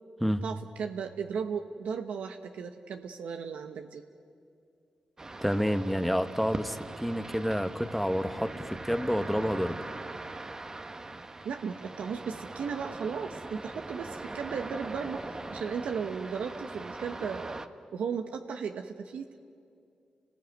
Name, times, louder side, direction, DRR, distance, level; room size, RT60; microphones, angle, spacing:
voice 1, 0.4-4.0 11.4-17.6 17.9-19.4, right 6 dB, 85° right, 5 dB, 1.1 m, -36 dB
sound 1, 5.2-17.7, right 2 dB, 25° right, 1.2 m, -41 dB
voice 2, 5.4-9.8, equal, ahead, 9 dB, 1.1 m, -29 dB
29.5 x 19.5 x 9.4 m, 2.4 s
cardioid pair, 80°, 2 cm